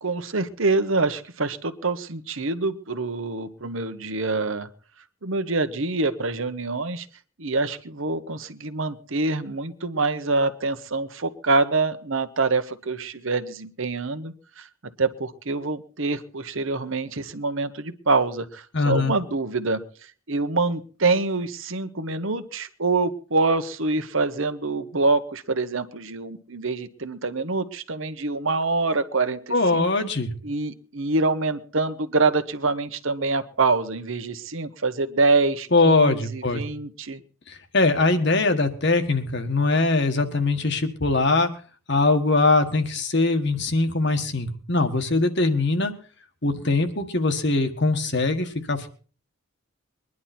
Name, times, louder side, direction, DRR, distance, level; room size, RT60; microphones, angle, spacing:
voice 1, 0.0-4.7 5.2-7.1 7.4-14.7 15.0-19.8 20.3-29.9 30.4-37.2, right 3 dB, 65° right, 10 dB, 1.2 m, -25 dB
voice 2, 18.7-19.1 29.5-30.3 35.7-36.6 37.5-41.5 41.9-45.9 46.4-48.9, left 3 dB, 55° left, 6 dB, 1.7 m, -22 dB
22.0 x 11.0 x 4.4 m, 0.40 s
head